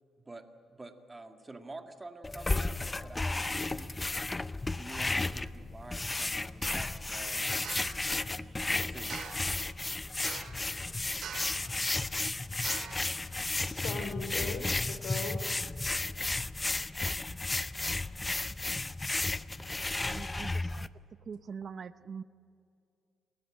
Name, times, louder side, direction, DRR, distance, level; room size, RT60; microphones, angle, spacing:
voice 1, 0.7-3.9 4.8-9.2, right 2 dB, 20° right, 6 dB, 1.9 m, -49 dB
sound 1, 2.2-20.9, left 2 dB, 20° left, 0.6 m, -33 dB
sound 2, 6.6-6.9 7.6-8.0 9.1-9.6 10.2-10.7 11.2-11.7 12.6-13.1, right 7 dB, 65° right, 2.3 m, -43 dB
voice 2, 12.9-15.6 20.2-20.3, left 4 dB, 75° left, 8 dB, 3.1 m, -41 dB
voice 3, 19.9-20.8 21.3-22.2, right 6 dB, 45° right, 15 dB, 0.6 m, -43 dB
28.0 x 13.5 x 8.9 m, 2.4 s
cardioid pair, 90°, 0 cm